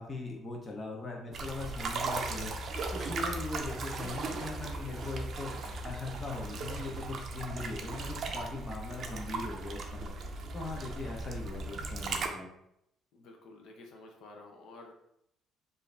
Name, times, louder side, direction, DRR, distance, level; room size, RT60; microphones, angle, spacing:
voice 1, 0.0-2.5 2.9-5.5 5.8-10.1 10.5-12.5, left 3 dB, 25° left, 0 dB, 0.7 m, -40 dB
sound 1, 1.3-12.3, right 3 dB, 45° right, 0.5 m, -37 dB
sound 2, 2.7-3.6 4.6-6.0 7.6-7.7, left 1 dB, 45° left, 1.2 m, -58 dB
voice 2, 13.1-14.9, left 2 dB, 65° left, 2 dB, 0.7 m, -51 dB
4.6 x 2.6 x 3.2 m, 0.79 s
cardioid pair, 150°, 0 cm